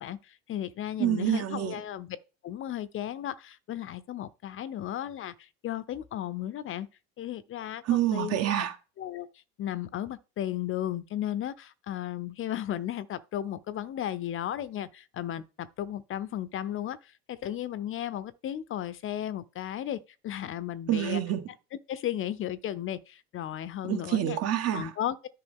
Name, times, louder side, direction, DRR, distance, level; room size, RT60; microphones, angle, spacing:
voice 1, 0.0-2.1 2.4-6.9 7.2-8.4 9.0-9.3 9.6-21.2 21.9-24.4 24.7-25.3, left 11 dB, 40° left, 0.6 m, -35 dB
voice 2, 1.0-1.8 7.8-8.8 20.9-21.5 23.9-24.9, right 11 dB, 50° right, 1.6 m, -27 dB
10.0 x 5.2 x 3.6 m
supercardioid pair, 95°, 32 cm